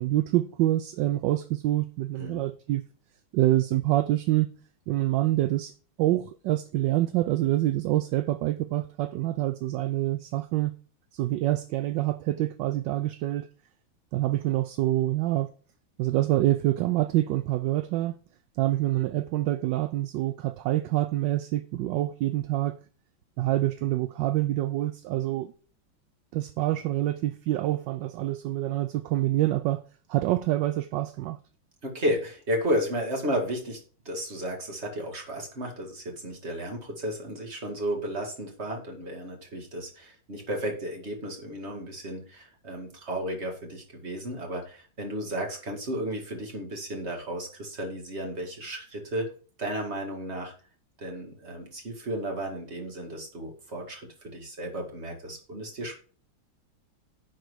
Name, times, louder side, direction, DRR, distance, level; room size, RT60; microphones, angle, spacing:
voice 1, 0.0-2.8 3.3-4.5 4.9-5.7 6.0-10.7 11.1-13.5 14.1-15.5 16.0-18.2 18.6-22.7 23.4-25.5 26.3-29.8 30.1-31.4, right 15 dB, 75° right, 1.1 m, -26 dB
voice 2, 31.8-33.8 34.1-49.3 49.6-50.5 51.0-54.1 54.3-56.0, equal, 30° right, 2.3 m, -33 dB
10.5 x 4.7 x 4.7 m
omnidirectional pair, 2.3 m